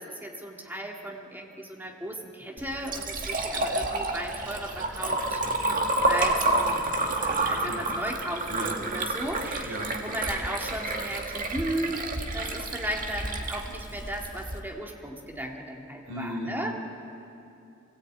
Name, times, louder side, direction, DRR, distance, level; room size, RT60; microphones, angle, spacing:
voice 1, 0.0-5.4 6.1-12.1 12.3-16.8, equal, 10° right, 0 dB, 2.2 m, -35 dB
Liquid, 2.6-14.6, right 2 dB, 40° right, 1.7 m, -29 dB
voice 2, 16.1-16.5, equal, 85° right, 0 dB, 4.8 m, -35 dB
24.0 x 18.0 x 8.8 m, 2.6 s
head